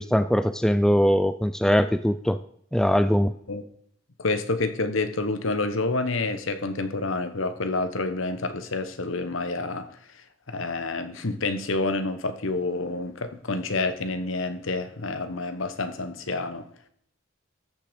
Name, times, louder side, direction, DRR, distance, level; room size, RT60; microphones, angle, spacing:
voice 1, 0.0-2.4 2.7-3.3, equal, 5° left, 0.3 m, -21 dB
voice 2, 4.2-9.9 10.5-16.7, left 3 dB, 70° left, 1.1 m, -28 dB
13.5 x 6.6 x 5.1 m
head